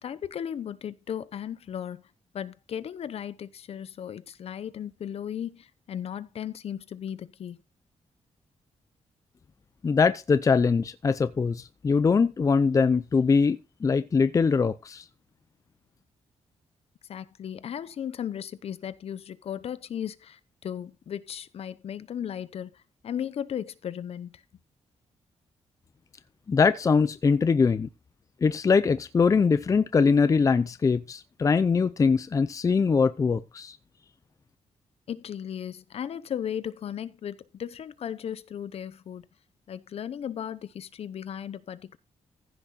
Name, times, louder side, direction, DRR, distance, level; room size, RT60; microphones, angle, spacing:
voice 1, 0.0-2.1 2.3-7.6 17.1-24.4 35.1-39.3 39.7-42.0, left 9 dB, 60° left, 0.8 m, -36 dB
voice 2, 9.8-15.0 26.5-27.9 28.4-33.8, left 5 dB, 30° left, 0.5 m, -22 dB
15.0 x 6.2 x 4.1 m
wide cardioid pair, 150°, 12 cm